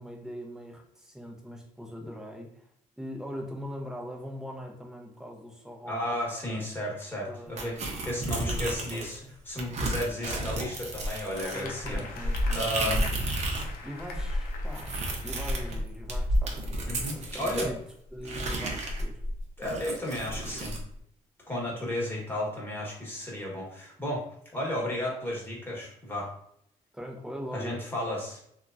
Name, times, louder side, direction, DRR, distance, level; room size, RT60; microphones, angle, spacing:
voice 1, 0.0-2.7 3.0-6.0 6.5-6.6 7.3-9.3 10.1-10.4 11.5-12.9 13.8-15.0 15.2-17.8 18.1-19.2 26.9-27.9, equal, 5° right, 0 dB, 0.6 m, -41 dB
voice 2, 5.8-9.2 9.5-12.0 12.5-13.0 16.9-17.7 19.6-20.8 21.5-24.3 24.5-26.3 27.5-28.4, left 1 dB, 15° left, -4 dB, 1.1 m, -33 dB
sound 1, 7.6-9.2 9.6-13.7 14.0-17.7 18.2-20.8, right 1 dB, 50° right, 0.7 m, -31 dB
sound 2, 11.3-15.7 16.4-17.3, left 4 dB, 90° left, 0.5 m, -44 dB
2.9 x 2.3 x 2.4 m, 0.71 s
cardioid pair, 95°, 15 cm